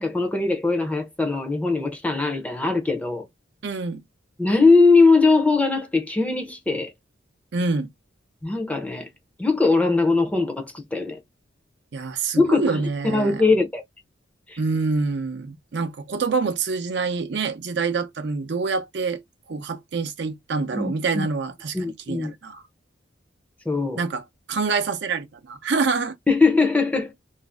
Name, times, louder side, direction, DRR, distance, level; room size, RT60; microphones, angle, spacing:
voice 1, 0.0-3.3 4.4-6.9 8.4-9.1 9.4-11.2 12.3-13.8 14.5-14.6 20.7-21.3 21.7-22.3 23.7-24.0 26.3-27.1, left 3 dB, 5° left, 0.5 m, -20 dB
voice 2, 3.6-4.0 7.5-7.9 11.9-13.4 14.6-19.2 19.5-22.6 24.0-26.2, right 4 dB, 60° right, 0.5 m, -26 dB
2.5 x 2.0 x 3.3 m
head